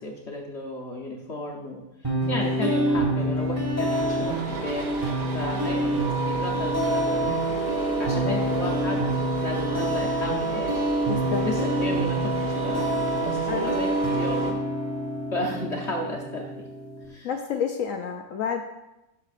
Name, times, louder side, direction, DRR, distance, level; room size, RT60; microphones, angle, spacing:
voice 1, 0.0-4.9 5.3-5.9 6.2-7.3 8.0-10.9 11.4-14.5 15.3-16.7 17.1-17.3, left 1 dB, 50° left, -1 dB, 1.0 m, -33 dB
sound 1, 2.0-17.1, equal, 15° right, 1.4 m, -27 dB
sound 2, 3.9-14.5, right 6 dB, 85° right, 1.5 m, -31 dB
voice 2, 5.5-5.9 8.3-8.6 11.1-11.5 13.5-13.7 17.2-18.6, left 6 dB, 70° left, 5 dB, 0.8 m, -30 dB
11.5 x 5.8 x 2.4 m, 0.94 s
omnidirectional pair, 1.8 m